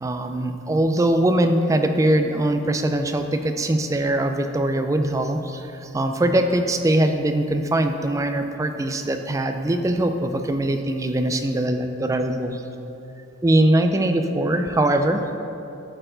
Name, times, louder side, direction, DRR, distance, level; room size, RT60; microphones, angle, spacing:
voice 1, 0.0-12.6 13.4-15.4, right 1 dB, 15° right, 6 dB, 0.3 m, -22 dB
12.0 x 4.4 x 3.9 m, 2.9 s
head